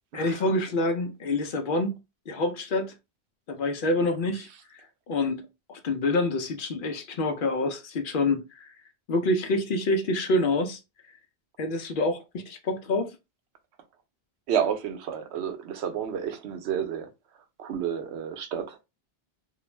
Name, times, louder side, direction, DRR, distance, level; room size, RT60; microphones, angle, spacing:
voice 1, 0.1-2.0 2.3-2.9 3.5-5.4 5.7-8.7 9.1-10.8 11.6-13.2, left 2 dB, 60° left, 0.6 m, -27 dB
voice 2, 14.5-17.1 17.6-18.8, right 8 dB, 90° right, 0.8 m, -30 dB
2.4 x 2.1 x 3.0 m
omnidirectional pair, 1.1 m